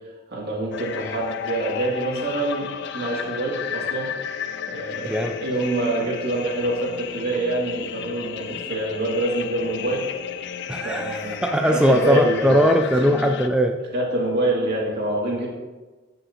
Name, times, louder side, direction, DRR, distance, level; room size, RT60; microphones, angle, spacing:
voice 1, 0.3-4.1 4.7-10.0 10.8-11.4 11.6-12.5 12.9-13.1 13.9-15.5, right 1 dB, 55° right, -4 dB, 2.4 m, -26 dB
sound 1, 0.7-13.5, left 8 dB, 60° left, 0.4 m, -33 dB
voice 2, 5.1-5.4 10.7-13.8, equal, 5° right, 3 dB, 0.3 m, -20 dB
13.0 x 5.6 x 2.8 m, 1.2 s
head